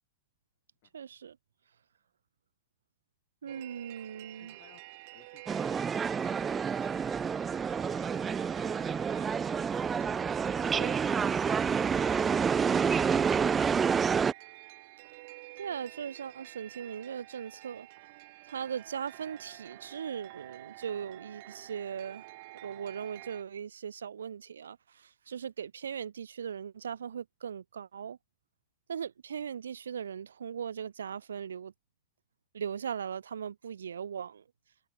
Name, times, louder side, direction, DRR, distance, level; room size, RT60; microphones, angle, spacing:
voice 1, 0.9-1.4 3.4-4.6 10.7-11.2 15.6-17.9 18.4-22.3 22.6-28.2 28.9-31.7 32.5-34.4, right 7 dB, 85° right, 1.0 m, -39 dB
voice 2, 3.4-4.1 4.4-4.8 9.8-10.9, left 26 dB, 55° left, 7.2 m, -63 dB
sound 1, 3.5-23.4, right 23 dB, 55° right, 2.7 m, -50 dB
sound 2, 5.5-14.3, right 6 dB, 20° right, 0.6 m, -28 dB
hypercardioid pair, 115°, 0 cm